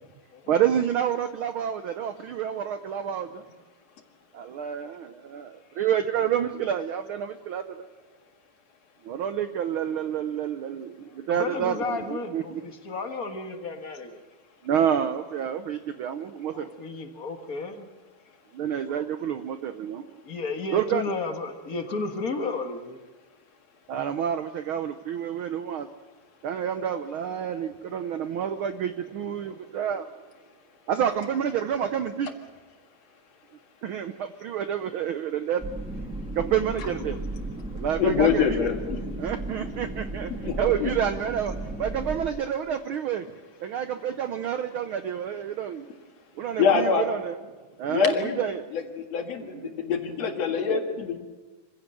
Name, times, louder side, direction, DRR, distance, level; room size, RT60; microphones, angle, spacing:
voice 1, 0.5-3.4 4.3-7.9 9.0-12.6 14.6-16.7 18.5-20.1 20.7-21.0 23.9-25.9 26.4-30.1 30.9-32.3 33.8-35.7 36.3-37.2 37.7-38.4 39.2-40.3 40.6-43.3 43.6-45.9 46.4-47.4 47.8-48.7 49.5-49.7, right 9 dB, 85° right, 10 dB, 1.1 m, -28 dB
voice 2, 11.3-14.2 16.5-17.9 18.9-19.0 20.2-23.0, left 3 dB, 40° left, 5 dB, 1.6 m, -33 dB
sound 1, 35.6-42.3, right 2 dB, ahead, 2.0 m, -35 dB
voice 3, 38.0-39.0 40.4-40.9 46.6-47.1 47.9-48.4 48.7-51.2, left 6 dB, 65° left, 4 dB, 3.0 m, -25 dB
26.0 x 16.0 x 7.8 m, 1.3 s
omnidirectional pair, 3.4 m